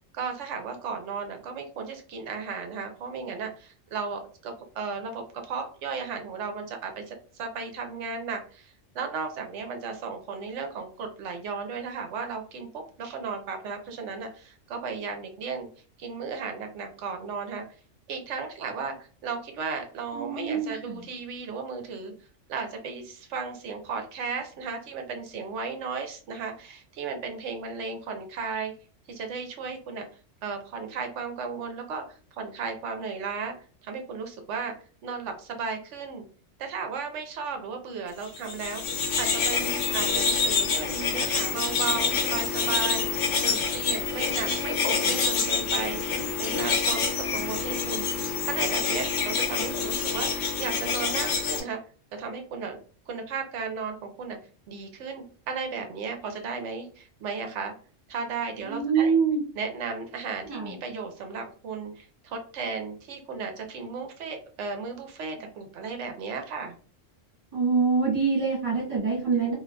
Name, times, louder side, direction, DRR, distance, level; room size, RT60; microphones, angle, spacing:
voice 1, 0.1-15.7 16.0-17.6 18.1-22.1 22.5-28.7 29.1-30.1 30.4-33.5 33.8-34.7 35.0-36.2 36.6-51.8 52.2-52.8 53.1-54.4 54.7-57.8 58.1-59.2 59.5-66.7, right 5 dB, 70° right, 5 dB, 1.0 m, -35 dB
voice 2, 20.1-21.0 58.6-59.4 60.5-60.7 67.5-69.5, right 5 dB, 30° right, -6 dB, 1.7 m, -25 dB
sound 1, 38.3-51.6, left 5 dB, 70° left, 1.0 m, -27 dB
3.7 x 2.7 x 2.2 m, 0.42 s
omnidirectional pair, 1.3 m